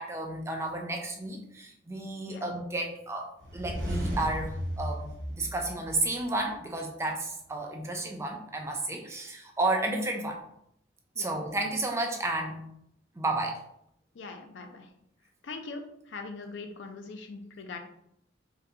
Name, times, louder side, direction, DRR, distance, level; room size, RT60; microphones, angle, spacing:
voice 1, 0.0-5.1 5.4-10.4 11.2-12.7 13.2-13.6, right 2 dB, 15° right, 2 dB, 0.4 m, -32 dB
sound 1, 3.4-6.4, equal, 70° right, 0.8 m, -35 dB
voice 2, 14.1-14.9 15.4-15.8 16.1-17.8, left 3 dB, 80° left, 5 dB, 0.5 m, -41 dB
3.7 x 2.2 x 2.7 m, 0.74 s
head